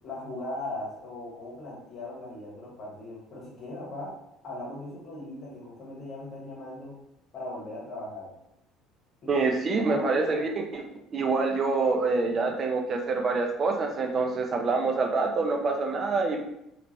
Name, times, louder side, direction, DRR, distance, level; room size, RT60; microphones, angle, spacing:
voice 1, 0.0-4.1 4.4-6.9 7.3-8.3 9.2-9.5 9.7-10.5, left 2 dB, 40° left, -6 dB, 1.0 m, -39 dB
voice 2, 9.3-10.8 11.1-16.4, right 3 dB, 35° right, 2 dB, 0.5 m, -26 dB
3.1 x 2.4 x 3.2 m, 0.82 s
figure-of-eight pair, 60°, 0 cm